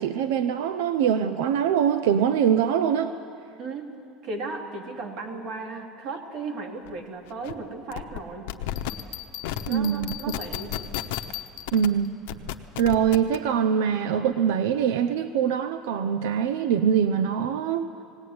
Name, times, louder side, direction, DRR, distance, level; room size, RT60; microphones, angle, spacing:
voice 1, 0.0-3.2 9.7-10.2 11.7-12.5 12.8-17.9, right 8 dB, 90° right, 11 dB, 0.7 m, -23 dB
voice 2, 3.6-3.9 4.2-8.5 9.6-10.7, right 3 dB, 45° right, 3 dB, 2.6 m, -35 dB
sound 1, 6.9-7.0 7.3-7.5 7.9-8.2 8.5-8.9 9.4-9.7 10.0-11.3 11.7-11.9 12.3-13.4, left 14 dB, 80° left, 0.9 m, -32 dB
Bell, 8.8-12.1, left 13 dB, 45° left, 0.8 m, -39 dB
18.5 x 18.5 x 9.5 m, 2.4 s
cardioid pair, 175°, 0 cm